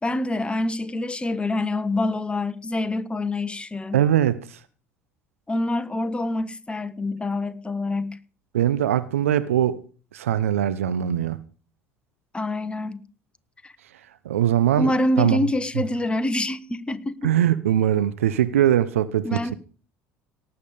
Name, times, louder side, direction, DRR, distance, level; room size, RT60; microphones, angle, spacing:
voice 1, 0.0-4.0 5.5-8.2 12.3-13.0 13.6-13.7 14.7-17.3 19.2-19.6, left 1 dB, 15° left, 1.3 m, -26 dB
voice 2, 3.9-4.4 8.5-9.8 10.1-11.4 14.2-14.9 15.2-15.4 17.2-19.5, right 11 dB, 80° right, 0.9 m, -21 dB
18.5 x 7.6 x 5.1 m
hypercardioid pair, 65°, 7 cm